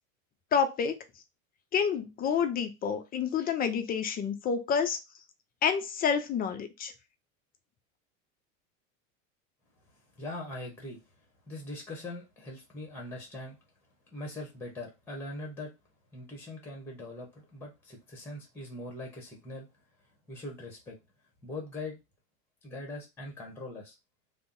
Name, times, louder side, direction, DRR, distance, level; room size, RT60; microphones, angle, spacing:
voice 1, 0.5-1.0 1.7-5.0 5.6-6.9, left 7 dB, 25° left, 7 dB, 0.4 m, -28 dB
voice 2, 9.9-11.0 11.5-13.6 14.1-15.7 16.1-19.7 20.3-21.0 21.4-22.0 22.6-23.9, left 2 dB, 5° left, 1 dB, 0.9 m, -41 dB
2.6 x 2.0 x 3.7 m, 0.24 s
supercardioid pair, 105°, 40 cm